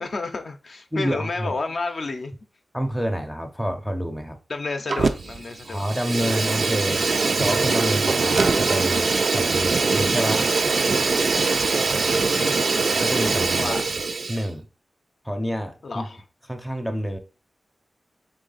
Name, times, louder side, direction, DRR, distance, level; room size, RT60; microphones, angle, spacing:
voice 1, 0.0-2.3 4.5-5.8 12.2-12.6 13.6-13.9 15.8-16.2, left 3 dB, 50° left, 0.5 m, -30 dB
voice 2, 0.9-1.6 2.7-4.4 5.6-7.0 7.4-10.5 13.0-13.7 14.3-14.7 15.2-16.1 16.5-17.2, equal, ahead, 0.6 m, -28 dB
Fire, 4.9-5.4 5.7-14.5, right 4 dB, 55° right, 0.4 m, -22 dB
3.7 x 3.3 x 3.9 m
wide cardioid pair, 140°, 0 cm